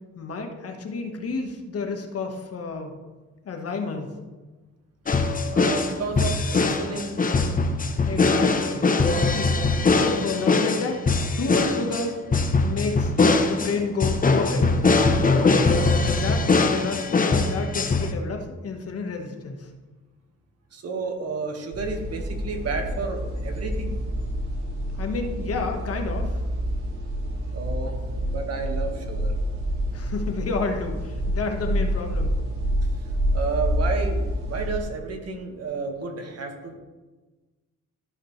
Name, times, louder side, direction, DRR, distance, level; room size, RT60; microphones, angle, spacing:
voice 1, 0.1-3.0 3.4-4.1 8.0-8.9 9.3-9.5 9.8-11.0 11.4-12.1 12.6-14.7 15.4-15.7 16.0-19.7 25.0-26.4 29.9-32.3, left 4 dB, 50° left, 3 dB, 1.5 m, -30 dB
sound 1, 5.1-18.1, left 3 dB, 30° left, 0.9 m, -21 dB
voice 2, 5.5-7.5 20.7-24.0 27.5-28.0 28.2-29.4 33.3-36.8, right 4 dB, 55° right, 3 dB, 1.8 m, -31 dB
sound 2, 21.7-34.8, equal, 75° right, 2.5 m, -28 dB
14.5 x 5.7 x 3.3 m, 1.2 s
cardioid pair, 90°, 30 cm